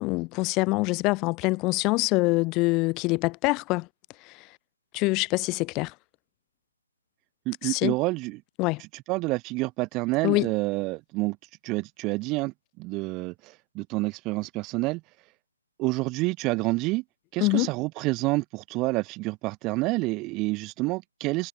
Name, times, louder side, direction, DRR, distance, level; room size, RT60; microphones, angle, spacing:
voice 1, 0.0-3.9 4.9-5.9 7.6-7.9 8.6-8.8 10.2-10.5 17.4-17.7, left 24 dB, 20° left, 1.9 m, -25 dB
voice 2, 7.5-8.4 8.8-11.4 11.6-15.0 15.8-17.0 17.3-21.5, right 23 dB, 20° right, 2.2 m, -28 dB
figure-of-eight pair, 145°, 0 cm